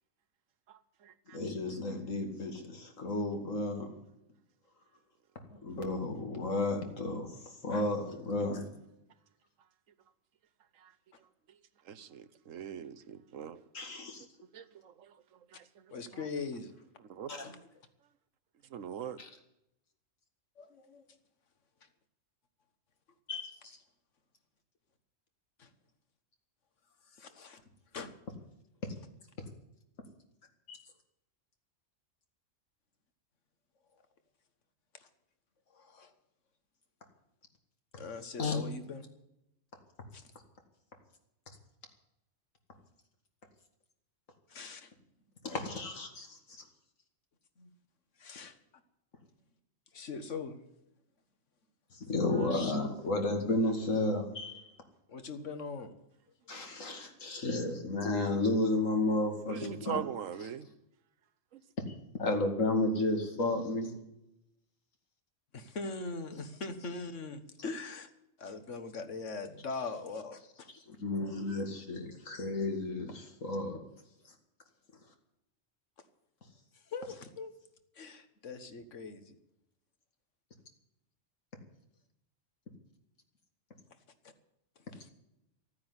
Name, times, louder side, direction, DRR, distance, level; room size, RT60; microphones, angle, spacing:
voice 1, 0.7-1.4 10.8-10.9 11.8-13.6 14.5-15.9 17.0-17.3 18.7-19.2 59.5-60.7 61.5-61.6, right 8 dB, 85° right, 13 dB, 1.3 m, -42 dB
voice 2, 1.3-4.0 5.5-8.6 13.7-14.2 17.3-17.4 19.2-19.3 23.3-23.8 28.8-28.9 30.7-30.8 38.4-38.6 45.4-46.6 51.9-54.6 56.5-60.0 61.9-63.9 70.9-73.8, left 2 dB, 85° left, 4 dB, 2.6 m, -33 dB
voice 3, 15.9-16.7 17.4-17.6 20.6-21.1 25.6-25.7 27.1-27.6 27.9-28.2 34.9-35.1 35.7-36.1 37.9-39.0 40.1-40.3 44.5-44.9 47.6-47.7 48.2-48.6 49.9-50.6 55.1-55.9 65.5-68.1 68.4-70.7 76.7-77.5 77.9-79.4 84.9-85.1, left 4 dB, 70° left, 9 dB, 1.7 m, -41 dB
14.0 x 9.5 x 9.6 m, 0.85 s
omnidirectional pair, 1.3 m